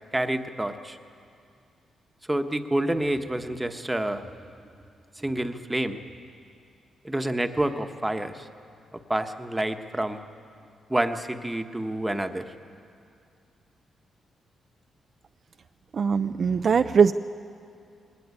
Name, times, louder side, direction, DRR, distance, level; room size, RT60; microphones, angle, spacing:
voice 1, 0.1-1.0 2.3-4.3 5.2-6.0 7.0-8.5 8.9-10.2 10.9-12.5, right 1 dB, 10° right, 7 dB, 1.2 m, -28 dB
voice 2, 15.9-17.1, right 6 dB, 50° right, 10 dB, 0.5 m, -21 dB
20.5 x 17.5 x 9.7 m, 2.4 s
cardioid pair, 90°, 0 cm